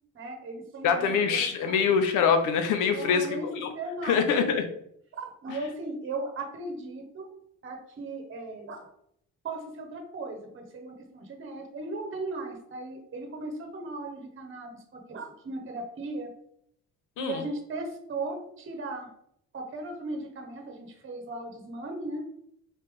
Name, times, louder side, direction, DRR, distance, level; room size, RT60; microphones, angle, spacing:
voice 1, 0.1-1.9 2.9-3.5 3.7-4.2 5.2-7.3 7.6-8.9 9.4-16.3 17.2-19.1 19.5-22.3, right 2 dB, 40° right, 3 dB, 1.1 m, -37 dB
voice 2, 0.8-3.7 4.0-4.6 5.5-5.6 17.2-17.4, left 6 dB, 85° left, 7 dB, 0.8 m, -24 dB
4.2 x 3.2 x 3.5 m, 0.70 s
cardioid pair, 90°, 30 cm